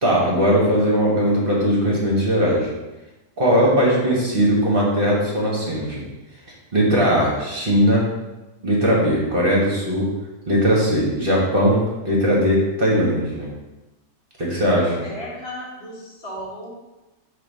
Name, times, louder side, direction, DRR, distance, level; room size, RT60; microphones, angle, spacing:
voice 1, 0.0-2.7 3.4-6.0 6.7-8.0 8.6-10.1 10.5-13.5 14.4-15.0, equal, 35° right, -4 dB, 1.5 m, -19 dB
voice 2, 15.0-16.7, equal, 40° left, -5 dB, 1.8 m, -35 dB
5.5 x 3.4 x 5.4 m, 1.1 s
omnidirectional pair, 1.8 m